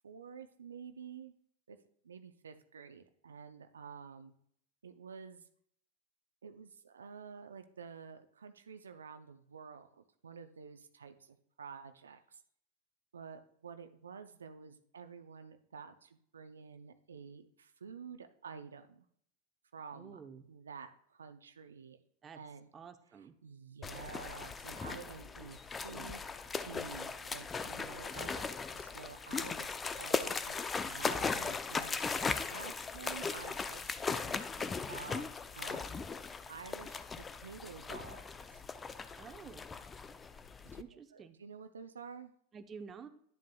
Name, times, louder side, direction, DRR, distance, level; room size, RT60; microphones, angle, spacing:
voice 1, 0.0-1.3 1.7-1.8 2.0-4.3 4.8-5.4 6.4-12.4 13.1-19.0 19.7-20.2 20.5-22.0 22.3-22.7 23.1-26.2 26.6-30.6 30.9-32.0 32.5-35.3 35.5-35.9 36.5-38.6 40.6-40.8 41.1-42.3, right 6 dB, 85° right, 9 dB, 0.5 m, -50 dB
voice 2, 19.9-20.4 22.2-22.4 22.7-23.3 39.2-39.6 40.8-41.4 42.5-43.1, right 6 dB, 30° right, 8 dB, 0.8 m, -50 dB
sound 1, 23.8-40.8, left 5 dB, 20° left, 0.5 m, -38 dB
10.5 x 7.5 x 2.3 m, 0.66 s
hypercardioid pair, 95°, 0 cm